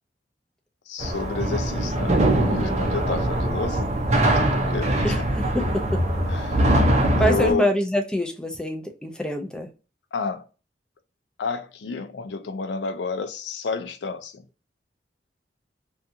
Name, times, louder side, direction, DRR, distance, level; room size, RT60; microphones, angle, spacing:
voice 1, 0.9-3.9 4.3-5.2 6.3-6.7 7.2-7.7 10.1-10.5 11.4-14.4, left 4 dB, 80° left, 0.4 m, -30 dB
sound 1, 1.0-7.5, right 1 dB, 40° right, 0.6 m, -22 dB
voice 2, 5.5-6.0 7.2-9.7, equal, 5° left, 0.5 m, -25 dB
2.7 x 2.3 x 2.6 m
head